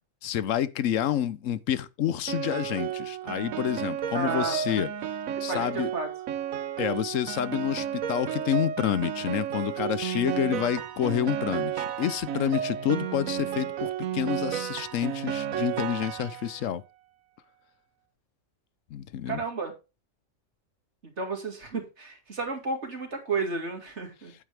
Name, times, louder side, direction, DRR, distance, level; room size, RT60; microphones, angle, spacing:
voice 1, 0.2-4.9 5.4-5.9 6.8-16.8 18.9-19.4, left 10 dB, 70° left, 1.1 m, -28 dB
Piano, 2.3-16.7, right 9 dB, 80° right, 1.2 m, -32 dB
voice 2, 4.1-4.8 5.3-6.1 10.1-10.2 16.2-16.3 19.3-19.7 21.0-24.3, right 4 dB, 55° right, 2.6 m, -32 dB
9.2 x 8.2 x 3.4 m
omnidirectional pair, 1.4 m